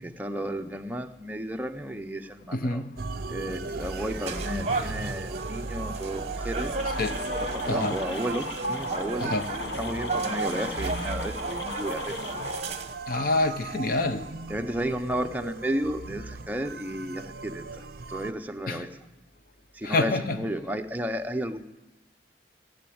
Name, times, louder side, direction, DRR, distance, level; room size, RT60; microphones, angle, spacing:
voice 1, 0.0-2.8 3.3-6.8 7.4-9.4 9.7-12.3 14.5-19.0 19.7-21.6, equal, 10° right, 0.6 m, -33 dB
voice 2, 2.5-3.0 7.0-7.2 7.7-8.0 9.2-9.5 13.1-14.3 18.7-18.8 19.8-20.4, left 2 dB, 50° left, 0.8 m, -27 dB
sound 1, 3.0-18.3, right 3 dB, 55° right, 0.6 m, -38 dB
sound 2, 3.8-12.9, right 3 dB, 35° right, 1.0 m, -34 dB
sound 3, 6.8-12.6, left 2 dB, 70° left, 1.0 m, -36 dB
15.0 x 7.8 x 8.6 m
head